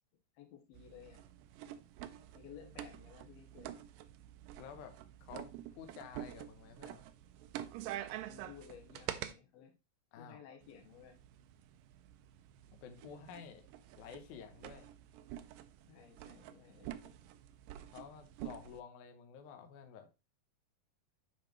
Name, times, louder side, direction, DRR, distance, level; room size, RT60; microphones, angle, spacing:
voice 1, 0.3-1.2 2.3-3.8 8.3-9.7 10.2-11.2 15.9-17.1, left 9 dB, 85° left, 3.0 m, -56 dB
sound 1, 0.7-9.3 10.6-18.8, right 12 dB, 80° right, 2.1 m, -48 dB
voice 2, 4.6-7.1 10.1-10.4 12.8-13.7 13.9-14.9 17.9-20.1, left 7 dB, 65° left, 2.1 m, -51 dB
9.2 x 4.9 x 3.0 m
omnidirectional pair, 4.3 m